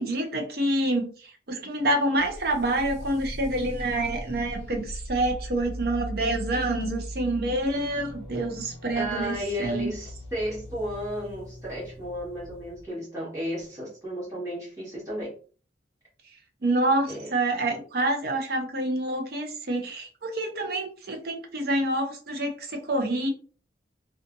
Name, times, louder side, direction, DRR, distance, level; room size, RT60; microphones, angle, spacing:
voice 1, 0.0-9.3 9.6-9.9 16.6-23.3, right 1 dB, 55° right, 4 dB, 0.6 m, -27 dB
sound 1, 2.2-12.8, equal, 65° left, 0.8 m, -39 dB
voice 2, 8.9-15.3 17.1-17.3, equal, 15° right, -8 dB, 1.3 m, -33 dB
2.6 x 2.4 x 2.5 m, 0.38 s
head